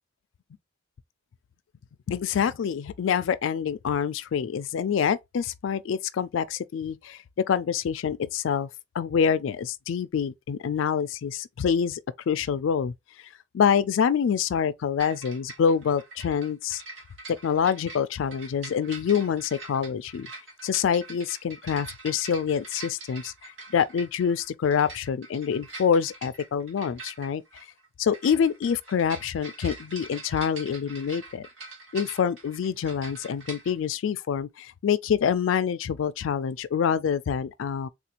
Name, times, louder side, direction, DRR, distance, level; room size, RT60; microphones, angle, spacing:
voice 1, 2.1-7.2 7.5-8.7 8.9-12.0 12.3-12.9 13.5-16.8 17.4-20.3 20.6-23.3 23.7-27.4 28.0-31.5 31.9-37.9, left 7 dB, 80° left, 0.3 m, -26 dB
sound 1, 15.0-33.7, right 3 dB, 80° right, 1.5 m, -44 dB
3.6 x 2.4 x 2.8 m
head